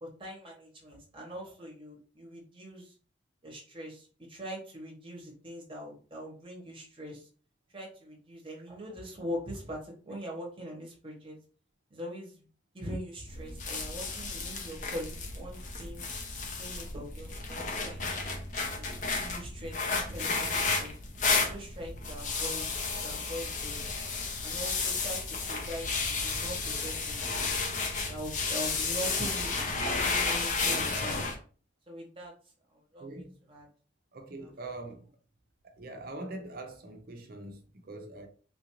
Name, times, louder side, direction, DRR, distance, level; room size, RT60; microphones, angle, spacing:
voice 1, 0.0-2.9 3.4-7.3 7.7-11.4 11.9-12.5 12.7-16.1 16.6-18.4 18.7-18.8 19.2-21.0 21.5-22.6 23.0-23.8 24.4-27.2 28.1-29.8 30.1-31.2 31.9-32.3 32.7-33.2 33.5-33.7, equal, 25° right, 1.0 m, -42 dB
sound 1, 13.3-31.4, left 4 dB, 40° left, 0.6 m, -32 dB
voice 2, 33.0-33.3 34.1-35.1 35.6-38.3, right 2 dB, 50° right, 0.6 m, -43 dB
3.8 x 2.5 x 3.0 m
head